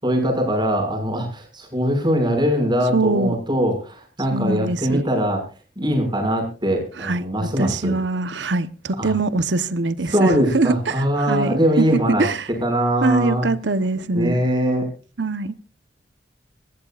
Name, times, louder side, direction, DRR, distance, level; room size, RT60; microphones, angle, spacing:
voice 1, 0.0-5.4 5.8-7.9 9.0-9.1 10.1-12.3 12.6-13.5 14.1-14.9, equal, 25° right, 6.0 m, -21 dB
voice 2, 2.9-3.3 4.3-5.0 7.0-12.5 13.0-14.4 15.2-15.5, right 3 dB, 80° right, 1.0 m, -23 dB
26.0 x 14.5 x 2.5 m
head